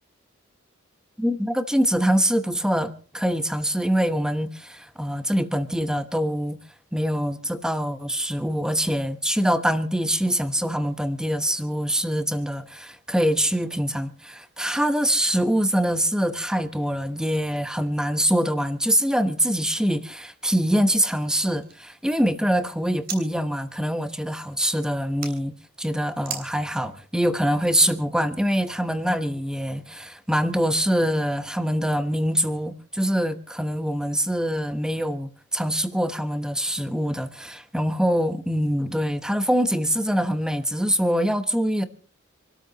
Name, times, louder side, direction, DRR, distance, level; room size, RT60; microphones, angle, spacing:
voice 1, 1.2-6.6 6.9-41.8, equal, 5° right, 1.0 m, -24 dB
sound 1, 21.1-23.2 23.6-25.3 26.2-26.5, right 6 dB, 50° right, 3.3 m, -40 dB
27.0 x 13.0 x 3.0 m
head